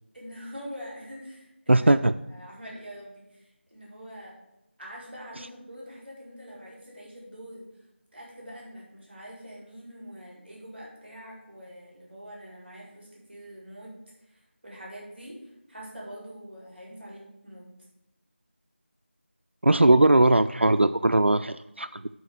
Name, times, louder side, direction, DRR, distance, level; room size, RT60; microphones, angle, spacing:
voice 1, 0.1-1.9 2.3-4.3 4.8-7.6 8.1-13.9 14.2-17.6, equal, 10° right, -5 dB, 4.1 m, -44 dB
voice 2, 1.7-2.1 19.6-22.1, right 2 dB, 70° right, 10 dB, 0.4 m, -20 dB
11.5 x 4.3 x 6.5 m, 0.93 s
figure-of-eight pair, 170°, 6 cm